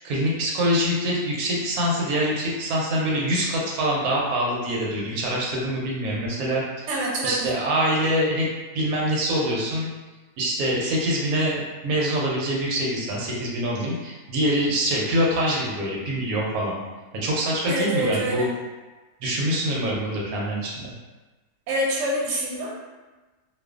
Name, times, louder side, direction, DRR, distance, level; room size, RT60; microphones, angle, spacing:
voice 1, 0.0-6.9 7.2-8.5 8.7-9.9 10.4-16.8 17.1-18.5 19.2-20.9, equal, 85° right, -3 dB, 1.1 m, -25 dB
voice 2, 6.9-7.5 17.7-18.5 21.7-22.7, right 1 dB, 65° right, -4 dB, 0.9 m, -26 dB
2.4 x 2.3 x 2.3 m, 1.2 s
omnidirectional pair, 1.5 m